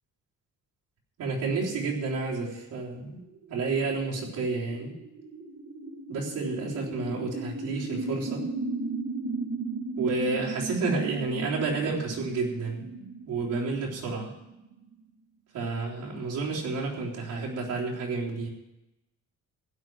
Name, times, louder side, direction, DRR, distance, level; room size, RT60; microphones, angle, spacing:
voice 1, 1.2-3.2 3.5-4.9 6.1-8.5 10.0-12.8 13.3-14.3 15.5-18.5, right 3 dB, 85° right, -4 dB, 4.0 m, -30 dB
sound 1, 3.1-14.9, right 3 dB, 70° right, 3.4 m, -36 dB
16.0 x 11.0 x 4.8 m, 0.93 s
cardioid pair, 160°, 31 cm